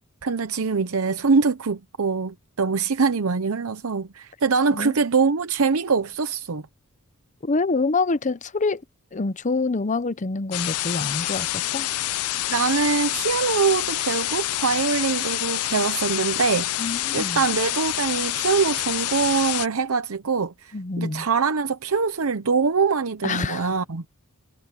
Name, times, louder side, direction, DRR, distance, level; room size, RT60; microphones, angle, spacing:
voice 1, 0.2-6.6 12.5-16.7 17.1-24.0, right 5 dB, 70° right, 0.8 m, -23 dB
voice 2, 7.4-8.8 9.1-11.9 16.8-17.4 20.7-21.3 23.2-23.7, left 3 dB, 35° left, 0.7 m, -26 dB
sound 1, 10.5-19.7, left 15 dB, 90° left, 0.5 m, -27 dB
head